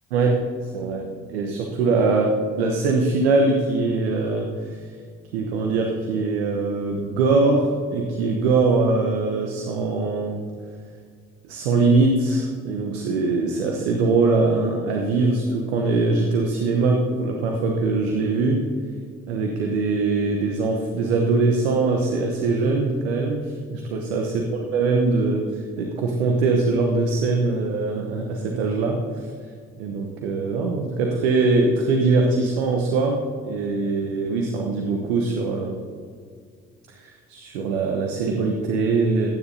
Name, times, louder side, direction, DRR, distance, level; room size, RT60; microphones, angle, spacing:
voice 1, 0.1-4.9 5.3-10.4 11.5-18.6 19.3-29.3 29.8-35.8 36.9-39.3, right 3 dB, 80° right, 2 dB, 1.0 m, -22 dB
19.5 x 9.6 x 2.7 m, 2.1 s
hypercardioid pair, 45°, 31 cm